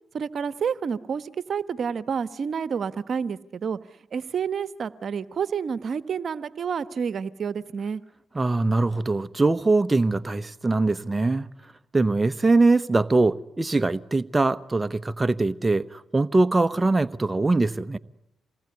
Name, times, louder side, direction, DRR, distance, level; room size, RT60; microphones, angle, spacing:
voice 1, 0.1-3.8 4.1-8.0, right 6 dB, 55° right, 1.2 m, -29 dB
voice 2, 8.3-11.5 11.9-18.0, right 3 dB, 20° right, 1.0 m, -22 dB
27.5 x 19.5 x 9.7 m
supercardioid pair, 55°, 0 cm